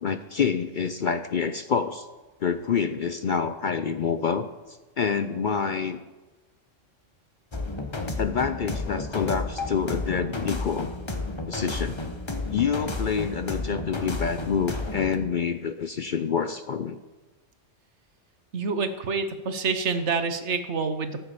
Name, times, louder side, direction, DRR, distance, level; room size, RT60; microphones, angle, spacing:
voice 1, 0.0-2.1 2.4-6.0 8.1-10.9 11.5-12.0 12.5-17.0, left 6 dB, 55° left, 10 dB, 0.6 m, -27 dB
sound 1, 7.5-15.2, left 2 dB, 25° left, 1.1 m, -32 dB
voice 2, 18.5-21.3, right 4 dB, 65° right, 9 dB, 1.3 m, -27 dB
14.0 x 8.1 x 6.9 m, 1.2 s
omnidirectional pair, 1.3 m